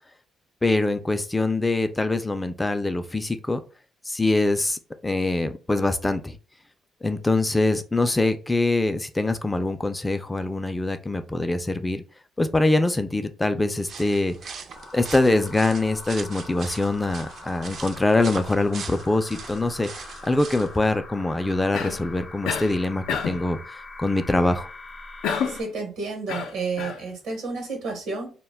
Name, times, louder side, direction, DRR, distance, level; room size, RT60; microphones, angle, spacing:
voice 1, 0.6-3.6 4.1-6.4 7.0-12.0 12.4-14.4 14.9-24.7, left 2 dB, 15° left, 9 dB, 0.3 m, -24 dB
sound 1, 13.7-20.8, right 5 dB, 55° right, 0.4 m, -41 dB
sound 2, 14.7-25.6, left 2 dB, 40° left, 0.7 m, -43 dB
Cough, 21.7-22.1 22.5-22.8 23.1-23.5 25.2-25.7 26.3-27.0, left 7 dB, 85° left, 0.4 m, -28 dB
voice 2, 25.5-28.3, right 4 dB, 90° right, 2 dB, 0.9 m, -31 dB
2.2 x 2.1 x 3.3 m, 0.35 s
cardioid pair, 90°, 0 cm